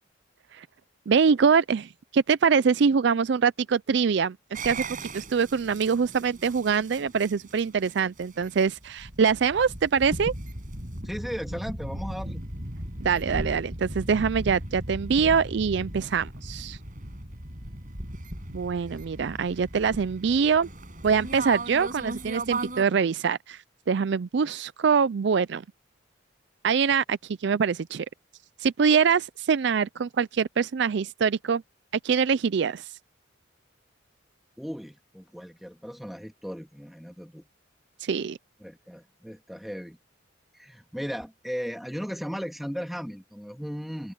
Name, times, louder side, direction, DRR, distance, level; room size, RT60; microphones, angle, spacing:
voice 1, 1.1-10.3 13.0-16.8 18.5-20.7 21.0-25.6 26.6-28.1 28.6-31.6 32.0-32.9 38.0-38.4, right 6 dB, 60° right, 0.4 m, -24 dB
sound 1, 4.5-22.8, right 2 dB, 40° right, 7.2 m, -37 dB
voice 2, 11.0-12.4 17.6-17.7 34.6-37.5 38.6-40.0 40.5-44.1, equal, ahead, 2.0 m, -36 dB
open air
head